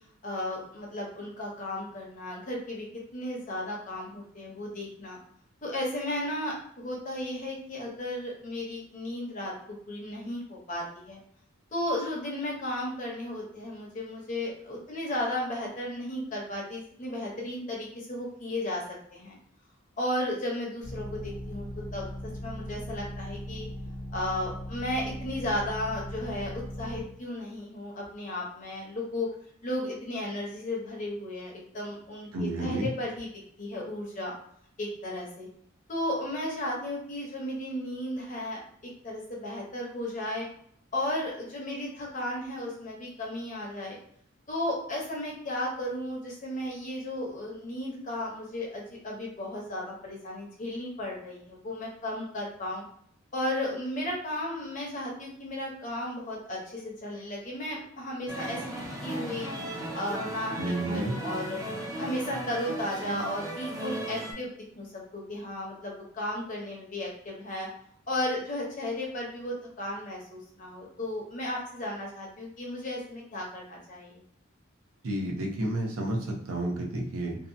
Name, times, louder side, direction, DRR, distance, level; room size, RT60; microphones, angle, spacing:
voice 1, 0.2-2.8 3.1-5.2 5.6-9.5 9.9-11.2 11.7-18.8 19.1-19.4 20.0-22.0 22.4-23.7 24.1-29.3 29.6-33.3 33.6-34.3 34.8-35.5 35.9-38.6 39.0-40.5 40.9-44.0 44.5-52.8 53.3-58.6 59.0-59.5 59.9-61.6 62.0-67.7 68.1-74.2, left 1 dB, 35° left, -2 dB, 0.6 m, -34 dB
sound 1, 20.8-27.0, equal, 55° right, 1.2 m, -38 dB
voice 2, 32.3-32.9 60.6-61.1 75.0-77.4, right 1 dB, 90° right, 0 dB, 0.6 m, -31 dB
sound 2, 58.3-64.3, right 1 dB, 15° right, 0.4 m, -36 dB
2.7 x 2.1 x 2.5 m, 0.65 s
head